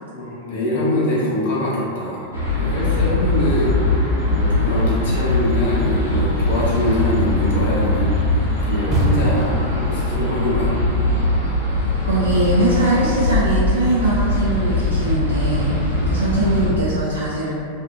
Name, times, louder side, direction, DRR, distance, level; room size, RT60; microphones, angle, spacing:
voice 1, 0.1-2.3 2.6-3.8 4.3-10.7 15.9-16.1, left 1 dB, 60° left, -6 dB, 0.8 m, -24 dB
sound 1, 2.3-16.7, left 2 dB, 85° left, 1.1 m, -21 dB
sound 2, 2.9-4.1 4.4-9.5, right 2 dB, 30° right, 0.7 m, -27 dB
voice 2, 12.0-15.7 16.1-17.5, right 1 dB, 75° right, -7 dB, 0.3 m, -21 dB
2.7 x 2.4 x 2.5 m, 2.4 s
figure-of-eight pair, 90°, 0 cm